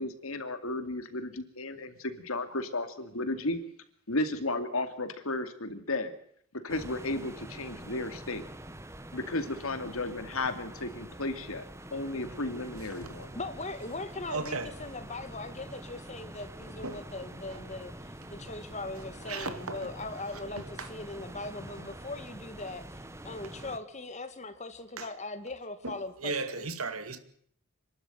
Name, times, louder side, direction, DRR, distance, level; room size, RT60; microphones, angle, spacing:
voice 1, 0.0-3.6 4.1-6.1 6.6-8.4 9.1-11.6 11.9-13.3, left 2 dB, 75° left, 2.4 m, -34 dB
sound 1, 6.7-23.8, right 1 dB, 15° right, 1.2 m, -45 dB
voice 2, 13.4-22.9 23.2-26.7, left 2 dB, 30° left, 2.0 m, -40 dB
voice 3, 14.3-14.7 16.8-17.0 17.5-17.6 19.2-19.9 20.3-20.9 25.0-25.1 25.8-27.2, right 3 dB, 80° right, 2.2 m, -36 dB
27.0 x 12.5 x 9.2 m
head